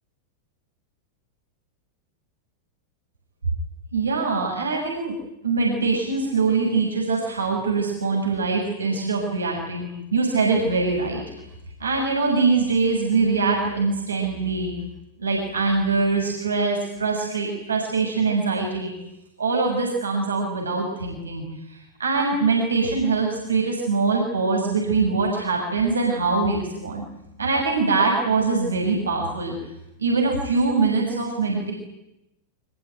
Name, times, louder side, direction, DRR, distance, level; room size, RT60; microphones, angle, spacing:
voice 1, 3.9-5.1 5.4-11.3 11.8-14.7 15.2-18.9 19.4-21.4 21.7-27.0 27.4-29.5 30.0-31.7, right 4 dB, 75° right, -1 dB, 6.7 m, -23 dB
25.5 x 21.0 x 9.4 m, 0.88 s
figure-of-eight pair, 90°, 0 cm